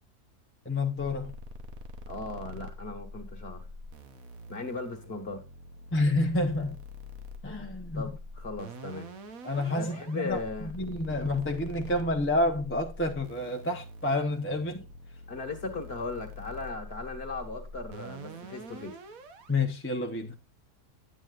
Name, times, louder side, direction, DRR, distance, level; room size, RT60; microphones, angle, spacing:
voice 1, 0.6-1.3 5.9-6.8 7.4-8.2 9.4-14.8 19.5-20.3, left 2 dB, 10° left, 0.7 m, -29 dB
sound 1, 1.2-19.6, left 1 dB, 60° right, 1.4 m, -45 dB
voice 2, 2.1-3.7 4.5-5.4 7.9-9.1 9.7-10.7 15.3-19.0, left 3 dB, 40° left, 1.7 m, -37 dB
9.2 x 9.0 x 2.5 m
omnidirectional pair, 1.7 m